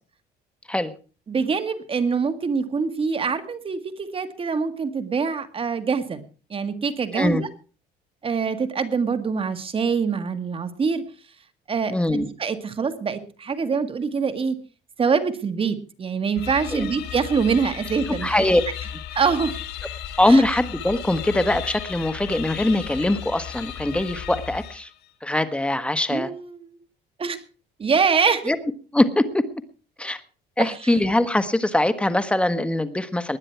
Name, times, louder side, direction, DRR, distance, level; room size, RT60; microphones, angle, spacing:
voice 1, 1.3-6.2 6.5-7.5 8.2-11.0 11.7-14.6 15.0-18.4 19.1-19.6 20.3-20.4 26.1-26.8 27.2-27.4 27.8-28.4 30.6-31.0, right 5 dB, 35° right, 10 dB, 1.8 m, -24 dB
voice 2, 11.9-12.3 16.7-16.9 18.2-18.6 20.2-24.9 25.2-26.3 28.5-28.6 28.9-29.4 30.0-30.2 30.6-33.4, left 1 dB, 5° left, 11 dB, 1.4 m, -22 dB
sound 1, 16.3-25.0, left 10 dB, 75° left, 2.1 m, -35 dB
20.0 x 9.8 x 4.6 m, 0.37 s
cardioid pair, 110°, 17 cm